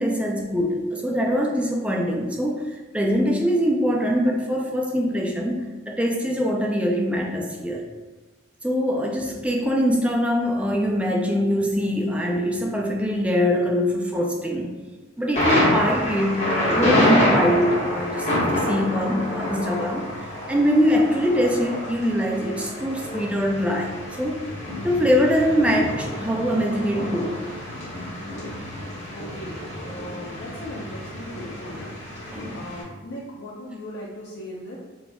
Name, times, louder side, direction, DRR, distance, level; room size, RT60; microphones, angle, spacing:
voice 1, 0.0-7.8 8.6-14.8 15.2-20.0 20.5-23.9 24.2-24.4 24.8-27.4 32.3-32.5, equal, 5° right, 0 dB, 0.3 m, -23 dB
Thunder, 15.4-32.8, left 1 dB, 35° left, 1.0 m, -27 dB
voice 2, 29.1-34.8, left 1 dB, 55° left, -5 dB, 0.5 m, -38 dB
4.1 x 3.4 x 2.3 m, 1.2 s
head